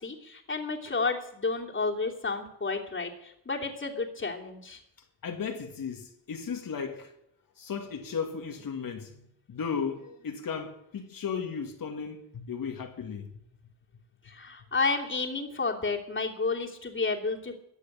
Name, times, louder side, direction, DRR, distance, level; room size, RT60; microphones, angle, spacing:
voice 1, 0.0-4.8 14.2-17.6, left 4 dB, 30° left, 2.9 m, -31 dB
voice 2, 5.2-7.1 7.6-13.3, left 6 dB, 55° left, 2.1 m, -35 dB
14.0 x 8.4 x 8.8 m
cardioid pair, 75°, 41 cm